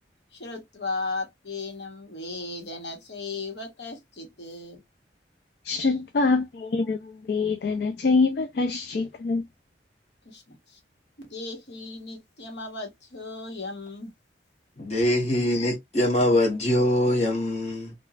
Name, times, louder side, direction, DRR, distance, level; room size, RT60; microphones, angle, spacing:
voice 1, 0.3-4.8 10.2-10.8 11.3-14.1, left 3 dB, 75° left, 1.2 m, -36 dB
voice 2, 5.6-9.4, left 4 dB, 60° left, 0.4 m, -25 dB
voice 3, 14.8-17.9, left 1 dB, 35° left, 1.2 m, -23 dB
2.9 x 2.4 x 2.3 m
head